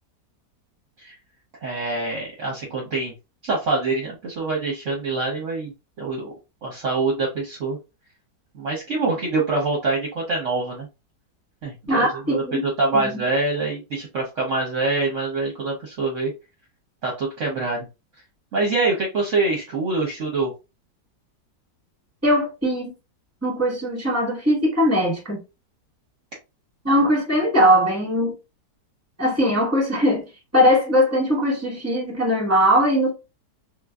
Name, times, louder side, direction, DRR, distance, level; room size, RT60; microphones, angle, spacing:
voice 1, 1.6-3.1 3.4-5.7 6.0-6.3 6.6-7.8 8.5-10.9 11.6-16.3 17.0-17.9 18.5-20.5, right 3 dB, 55° right, 1.0 m, -25 dB
voice 2, 11.9-12.6 12.9-13.0 22.2-22.9 23.4-25.4 26.8-28.3 29.2-30.2 30.5-33.1, equal, 10° right, 1.3 m, -20 dB
3.4 x 2.5 x 2.3 m
omnidirectional pair, 1.8 m